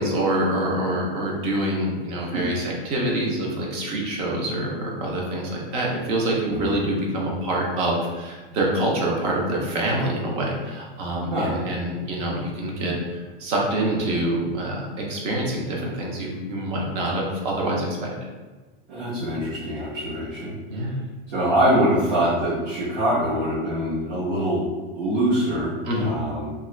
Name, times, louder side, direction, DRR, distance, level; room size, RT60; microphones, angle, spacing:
voice 1, 0.0-18.1 20.7-21.0 25.8-26.1, right 1 dB, 20° right, -2 dB, 0.4 m, -26 dB
voice 2, 18.9-20.6 21.3-24.6 24.9-26.5, right 1 dB, 45° right, -9 dB, 0.8 m, -24 dB
2.8 x 2.3 x 3.1 m, 1.3 s
supercardioid pair, 165°, 29 cm